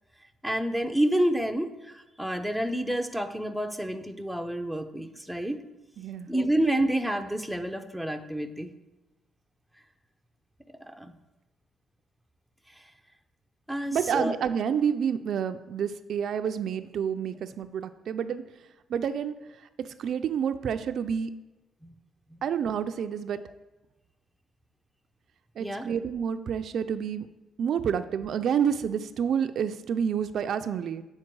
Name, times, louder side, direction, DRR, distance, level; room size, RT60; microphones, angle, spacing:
voice 1, 0.4-5.6 6.3-8.7 10.9-11.1 12.7-12.8 13.7-14.3 21.8-21.9 22.3-22.4 25.6-25.9, right 1 dB, ahead, 6 dB, 0.6 m, -29 dB
voice 2, 6.0-6.3 13.9-18.4 18.9-19.3 19.8-21.3 22.4-23.4 25.6-27.3 27.6-31.0, right 8 dB, 65° right, 10 dB, 0.4 m, -29 dB
7.4 x 4.5 x 4.6 m, 1.1 s
cardioid pair, 90°, 0 cm